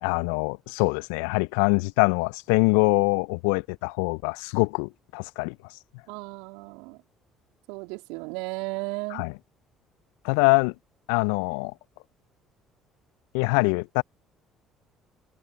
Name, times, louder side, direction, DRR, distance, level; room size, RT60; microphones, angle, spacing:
voice 1, 0.0-5.5 9.1-9.4 10.2-10.7 11.1-11.7 13.3-14.0, left 33 dB, 70° left, 1.1 m, -24 dB
voice 2, 6.1-7.0 7.7-9.2, right 30 dB, 70° right, 3.4 m, -35 dB
figure-of-eight pair, 50°, 0 cm